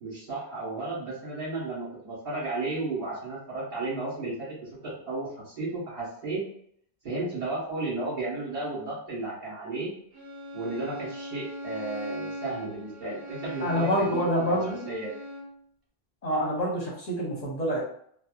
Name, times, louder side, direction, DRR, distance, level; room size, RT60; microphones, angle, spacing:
voice 1, 0.0-6.5 7.0-9.9 10.5-14.6 14.8-15.1, right 2 dB, 50° right, -11 dB, 1.4 m, -33 dB
Bowed string instrument, 10.1-15.6, equal, 35° right, 0.4 m, -40 dB
voice 2, 13.6-14.8 16.2-17.8, equal, 45° left, -3 dB, 0.8 m, -27 dB
2.8 x 2.0 x 2.3 m, 0.66 s
omnidirectional pair, 1.0 m